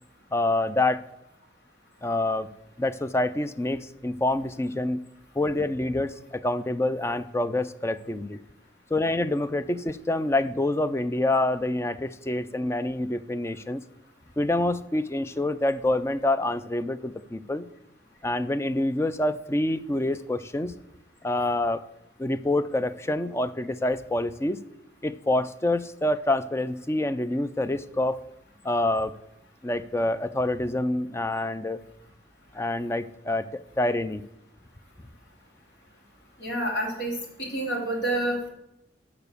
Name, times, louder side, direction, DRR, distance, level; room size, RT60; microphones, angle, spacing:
voice 1, 0.3-1.0 2.0-2.5 2.8-5.0 5.4-8.4 8.9-13.8 14.4-17.7 18.2-20.7 21.2-21.8 22.2-24.6 25.0-28.2 28.6-29.1 29.6-31.8 32.5-34.2, left 2 dB, 15° left, 12 dB, 0.4 m, -26 dB
voice 2, 36.4-38.5, right 1 dB, 70° left, -1 dB, 2.8 m, -28 dB
7.0 x 5.9 x 6.7 m, 0.83 s
head